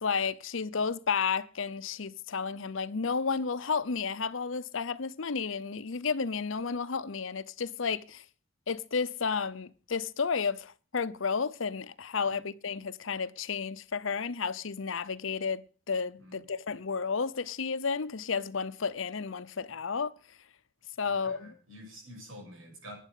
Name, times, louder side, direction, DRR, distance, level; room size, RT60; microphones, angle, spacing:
voice 1, 0.0-8.2 8.7-20.1 21.0-21.5, left 5 dB, 75° left, 0.8 m, -32 dB
voice 2, 21.0-23.0, equal, 80° right, 7.9 m, -48 dB
11.0 x 10.0 x 8.4 m
head